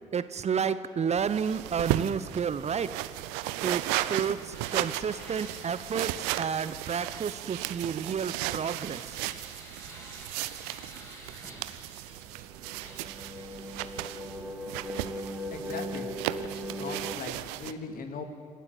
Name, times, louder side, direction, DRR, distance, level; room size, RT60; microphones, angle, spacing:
voice 1, 0.1-3.0 3.6-9.2, right 7 dB, 40° right, 14 dB, 1.0 m, -31 dB
sound 1, 1.2-17.7, right 15 dB, 70° right, 0.7 m, -35 dB
sound 2, 4.5-12.5 12.8-14.0, equal, 15° left, 5.6 m, -51 dB
sound 3, 12.1-17.1, equal, 5° right, 2.7 m, -38 dB
voice 2, 15.5-16.1 16.5-18.2, left 5 dB, 55° left, 7 dB, 2.3 m, -39 dB
27.5 x 12.5 x 9.6 m, 2.2 s
figure-of-eight pair, 45°, 17 cm